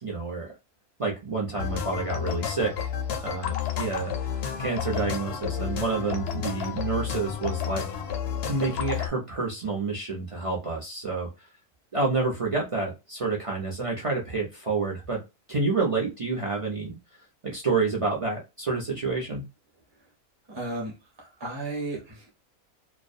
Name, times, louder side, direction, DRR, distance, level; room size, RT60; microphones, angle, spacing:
voice 1, 0.0-0.5 1.0-2.9 3.2-7.8 8.5-11.3 11.9-15.2 15.5-17.0 17.4-19.4, right 4 dB, 55° right, -2 dB, 0.3 m, -29 dB
sound 1, 1.6-9.1, left 8 dB, 65° left, 0.6 m, -31 dB
voice 2, 20.5-22.3, right 2 dB, 25° right, 0 dB, 0.7 m, -34 dB
2.4 x 2.1 x 2.5 m, 0.25 s
omnidirectional pair, 1.5 m